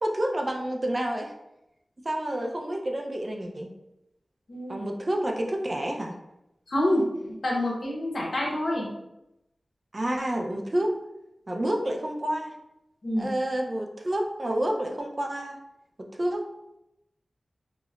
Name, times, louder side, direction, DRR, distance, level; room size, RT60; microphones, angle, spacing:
voice 1, 0.0-1.3 2.0-3.7 4.7-6.2 9.9-11.0 11.5-12.5 13.2-15.6 16.1-16.5, right 1 dB, 35° right, 1 dB, 0.4 m, -29 dB
voice 2, 4.5-4.8 6.7-8.9 13.0-13.3, left 1 dB, 65° left, -3 dB, 0.9 m, -27 dB
4.9 x 2.0 x 2.4 m, 0.86 s
wide cardioid pair, 95°, 0 cm